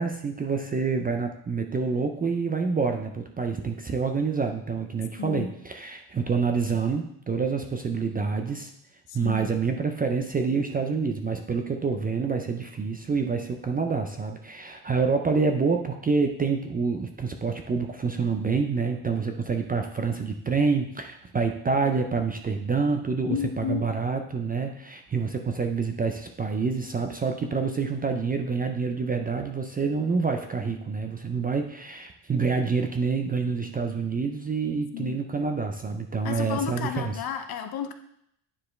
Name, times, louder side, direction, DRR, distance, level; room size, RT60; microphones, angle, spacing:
voice 1, 0.0-8.7 9.1-37.2, right 4 dB, 20° right, 5 dB, 0.4 m, -27 dB
voice 2, 5.2-5.5 9.1-9.5 23.2-23.9 34.9-35.2 36.2-37.9, left 7 dB, 50° left, 7 dB, 0.8 m, -32 dB
9.8 x 4.6 x 3.2 m, 0.73 s
cardioid pair, 115°, 46 cm